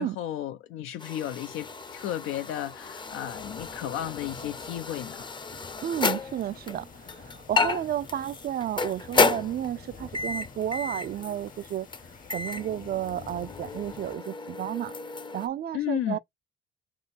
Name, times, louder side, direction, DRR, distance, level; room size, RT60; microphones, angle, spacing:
voice 1, 0.0-5.3 15.7-16.2, left 12 dB, 85° left, 0.5 m, -33 dB
sound 1, 1.0-15.5, left 4 dB, 25° left, 0.5 m, -32 dB
sound 2, 1.2-14.2, left 5 dB, 45° left, 0.9 m, -48 dB
voice 2, 5.8-11.9 12.3-14.9 15.3-16.2, right 11 dB, 50° right, 0.4 m, -32 dB
3.6 x 2.7 x 4.1 m
cardioid pair, 90°, 20 cm